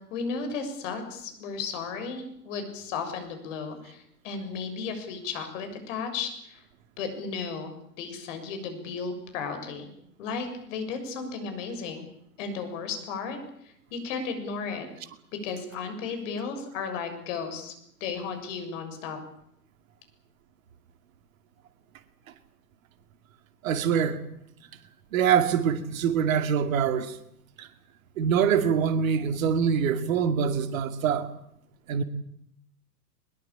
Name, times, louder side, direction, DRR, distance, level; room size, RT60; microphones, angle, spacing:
voice 1, 0.0-6.6 7.0-7.7 8.0-9.9 10.2-12.1 12.4-13.4 13.6-14.9 15.4-17.7 18.0-19.2, left 5 dB, 50° left, 6.9 m, -34 dB
voice 2, 23.6-24.2 25.1-27.2 27.6-27.7 28.2-31.3 31.9-32.0, right 7 dB, 55° right, 2.5 m, -24 dB
21.5 x 21.5 x 8.8 m
figure-of-eight pair, 105°, 48 cm